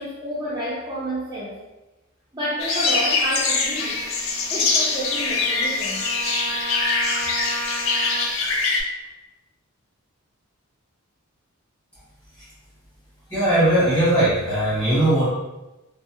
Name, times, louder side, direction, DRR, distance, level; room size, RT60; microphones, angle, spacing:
voice 1, 0.0-1.6 2.3-4.0 4.5-6.1, equal, 15° right, -11 dB, 0.5 m, -29 dB
sound 1, 2.6-8.8, left 4 dB, 60° left, 0.4 m, -23 dB
Trumpet, 3.8-8.3, right 2 dB, 85° right, 0.5 m, -34 dB
voice 2, 13.3-15.3, right 1 dB, 5° left, -12 dB, 1.5 m, -19 dB
3.2 x 2.0 x 2.9 m, 1.0 s
head